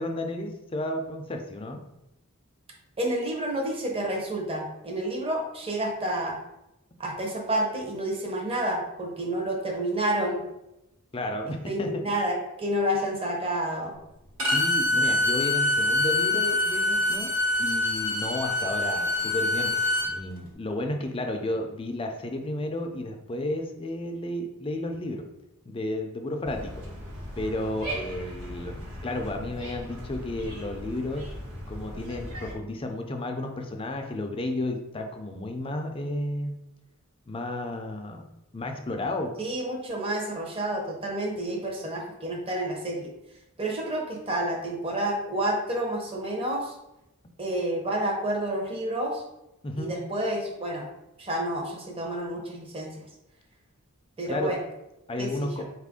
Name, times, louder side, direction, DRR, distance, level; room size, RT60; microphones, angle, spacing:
voice 1, 0.0-1.8 11.1-12.2 14.5-17.3 17.6-19.7 20.1-25.2 25.7-26.8 27.4-31.3 31.7-36.6 37.3-38.2 38.5-39.3 49.6-49.9 54.3-54.5 55.1-55.6, left 1 dB, 25° left, 4 dB, 0.4 m, -32 dB
voice 2, 3.0-6.4 7.0-10.4 11.7-14.0 39.4-43.1 43.6-46.7 47.4-49.2 49.8-50.8 51.2-53.0 54.2-54.6 55.2-55.5, right 1 dB, 25° right, 0 dB, 0.7 m, -29 dB
Bowed string instrument, 14.4-20.1, left 2 dB, 65° right, 1.2 m, -25 dB
sound 1, 26.4-32.5, equal, 85° right, 1.3 m, -38 dB
4.2 x 2.5 x 3.5 m, 0.90 s
head